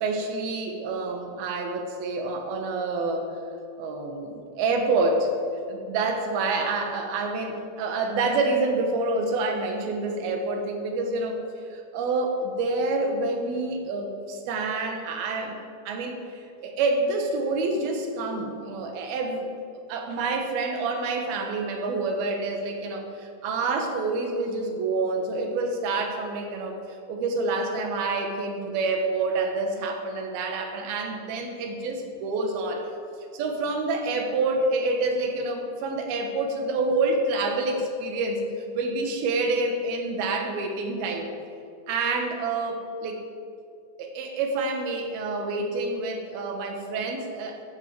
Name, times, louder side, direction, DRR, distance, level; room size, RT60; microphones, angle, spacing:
voice 1, 0.0-3.3 3.8-5.3 5.7-11.4 11.7-15.6 15.9-19.5 19.9-32.9 33.3-38.4 38.7-41.3 41.9-43.3 44.0-47.6, right 3 dB, 90° right, 4 dB, 3.2 m, -27 dB
13.0 x 7.9 x 7.5 m, 2.6 s
omnidirectional pair, 4.2 m